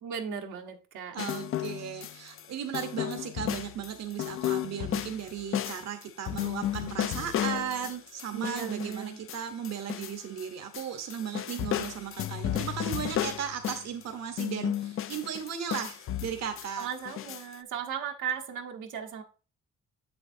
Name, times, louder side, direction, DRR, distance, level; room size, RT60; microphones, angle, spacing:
voice 1, 0.0-1.2 8.3-9.2 16.8-19.2, right 7 dB, 80° right, 2 dB, 1.1 m, -36 dB
voice 2, 1.1-16.9, right 8 dB, 60° right, 5 dB, 0.9 m, -36 dB
sound 1, 1.2-2.4 2.7-10.5 10.7-14.0 14.4-17.5, left 11 dB, 45° left, 0.4 m, -33 dB
7.1 x 6.9 x 2.6 m, 0.36 s
cardioid pair, 90°, 30 cm